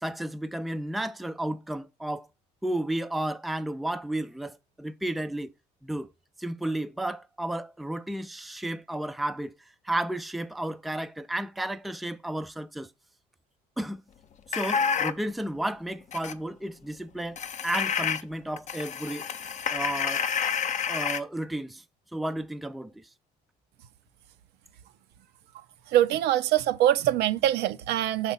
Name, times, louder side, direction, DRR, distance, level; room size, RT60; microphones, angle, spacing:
voice 1, 0.0-2.3 2.6-5.5 5.8-6.1 6.4-9.5 9.8-12.9 13.8-14.0 14.5-17.4 17.6-19.2 19.7-20.2 20.9-21.8 22.1-22.9, right 1 dB, ahead, 0.4 m, -32 dB
sound 1, 14.5-15.2 16.1-16.3 17.4-18.2 18.6-21.2, left 7 dB, 45° left, 0.7 m, -29 dB
voice 2, 25.9-28.3, right 12 dB, 80° right, 0.7 m, -23 dB
6.0 x 4.2 x 5.5 m
cardioid pair, 110°, 17 cm